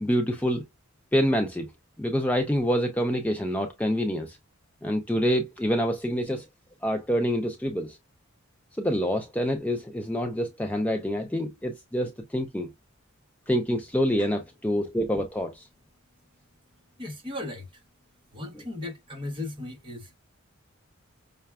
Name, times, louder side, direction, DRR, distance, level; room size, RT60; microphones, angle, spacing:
voice 1, 0.0-0.6 1.1-1.7 2.0-4.4 4.8-6.4 6.8-8.0 8.8-12.7 13.5-15.7, equal, 5° left, 0.4 m, -26 dB
voice 2, 17.0-17.8 18.3-20.2, left 2 dB, 25° right, 0.9 m, -37 dB
5.6 x 2.2 x 2.2 m
head